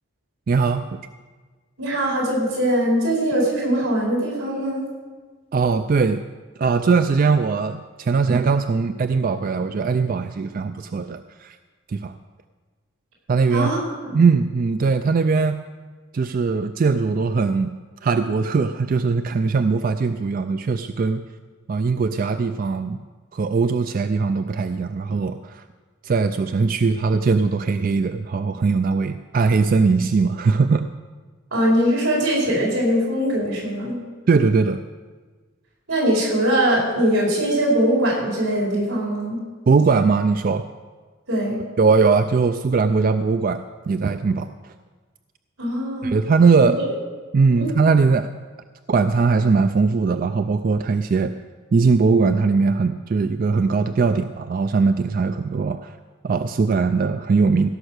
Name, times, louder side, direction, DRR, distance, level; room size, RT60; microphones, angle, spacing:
voice 1, 0.5-1.0 5.5-6.2 6.6-11.6 11.9-12.1 13.3-13.7 14.1-15.6 16.1-17.7 18.0-21.2 21.7-23.0 23.3-25.6 26.0-30.9 34.3-34.8 39.7-40.6 41.8-44.7 46.0-46.8 47.3-48.3 48.9-51.3 51.7-55.9 56.2-57.7, right 4 dB, 40° right, 10 dB, 0.3 m, -20 dB
voice 2, 1.8-4.8 13.5-13.8 14.0-14.1 31.5-34.0 35.9-39.4 41.3-41.6 45.6-46.1 47.6-47.7, equal, 85° right, -3 dB, 4.8 m, -21 dB
16.0 x 6.3 x 6.6 m, 1.4 s
head